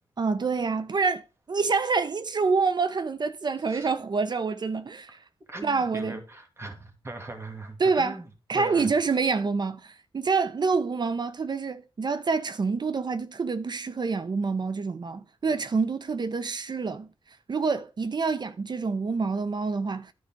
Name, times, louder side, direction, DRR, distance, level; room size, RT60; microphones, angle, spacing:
voice 1, 0.2-5.2 5.6-6.2 7.8-8.2 8.5-17.1 17.5-20.1, right 4 dB, 45° right, 0.7 m, -27 dB
voice 2, 5.5-8.3 8.5-8.9, right 2 dB, 25° right, 2.5 m, -40 dB
10.5 x 4.9 x 4.5 m
cardioid pair, 70°, 10 cm